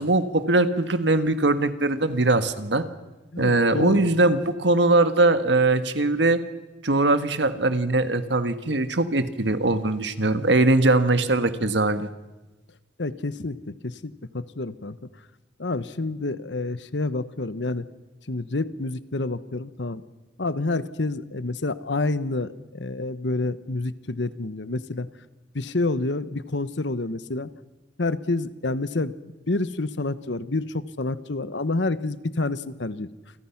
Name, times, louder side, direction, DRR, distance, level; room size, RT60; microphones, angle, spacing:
voice 1, 0.0-2.8 3.4-6.4 6.8-12.1, right 2 dB, 70° right, 10 dB, 1.6 m, -21 dB
voice 2, 3.3-4.1 13.0-15.1 15.6-17.9 18.3-20.0 20.4-25.1 25.5-27.5 28.0-29.1 29.5-33.1, left 2 dB, 70° left, 14 dB, 1.1 m, -28 dB
29.0 x 25.0 x 5.9 m, 1.1 s
head